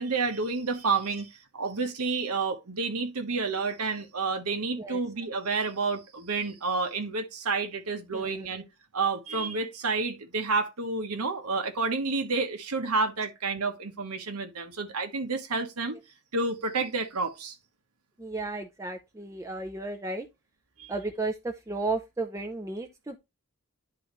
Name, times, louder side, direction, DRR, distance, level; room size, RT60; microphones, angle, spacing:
voice 1, 0.0-8.6 8.9-15.9 16.3-17.5 20.8-20.9, right 4 dB, 85° right, 1.1 m, -30 dB
voice 2, 8.1-8.5 18.2-20.3 20.9-23.2, right 2 dB, 15° right, 0.5 m, -34 dB
10.5 x 3.9 x 3.0 m
head